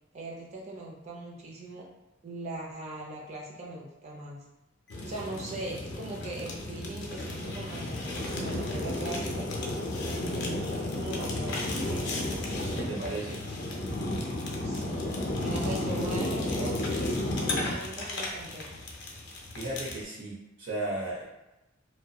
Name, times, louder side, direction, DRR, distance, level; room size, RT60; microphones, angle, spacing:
voice 1, 0.1-1.9 2.2-4.4 5.0-9.5 10.1-12.2 14.6-18.7, right 2 dB, 35° right, -2 dB, 0.5 m, -40 dB
Fire, 4.9-20.0, left 1 dB, 60° left, 0.5 m, -33 dB
voice 2, 12.6-13.4 19.5-21.2, right 1 dB, 70° right, -5 dB, 0.7 m, -35 dB
2.7 x 2.1 x 2.3 m, 0.99 s
head